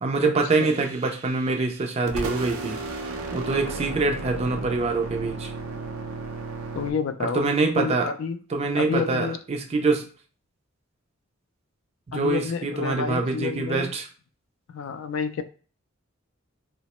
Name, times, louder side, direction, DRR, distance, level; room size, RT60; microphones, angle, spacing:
voice 1, 0.0-2.8 3.3-5.5 7.2-8.1 8.5-10.1 12.1-14.1, right 3 dB, 30° right, 4 dB, 0.4 m, -25 dB
sound 1, 0.6-1.8 2.1-6.9, right 3 dB, 85° right, 0.5 m, -34 dB
voice 2, 6.7-7.4 7.8-8.4 8.8-9.4 12.1-13.9 14.7-15.4, left 5 dB, 70° left, 10 dB, 0.3 m, -29 dB
2.8 x 2.0 x 2.9 m, 0.40 s
head